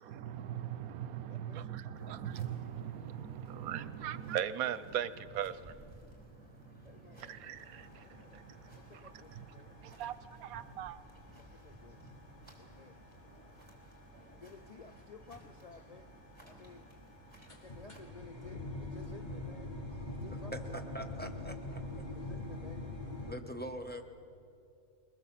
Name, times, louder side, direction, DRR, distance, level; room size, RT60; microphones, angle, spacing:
voice 1, 0.0-11.0, right 10 dB, 80° right, 1.2 m, -40 dB
voice 2, 1.3-2.2 6.8-9.8 11.3-12.1 12.6-13.0 13.3-13.6 14.4-16.9 17.5-20.9 22.1-23.6, left 4 dB, 85° left, 0.3 m, -56 dB
sound 1, 1.9-18.0, right 1 dB, 20° right, 3.5 m, -57 dB
sound 2, 7.6-23.3, left 2 dB, 30° left, 2.1 m, -46 dB
voice 3, 20.5-22.0 23.2-24.0, right 1 dB, 5° left, 1.0 m, -43 dB
21.5 x 20.0 x 7.4 m
omnidirectional pair, 1.5 m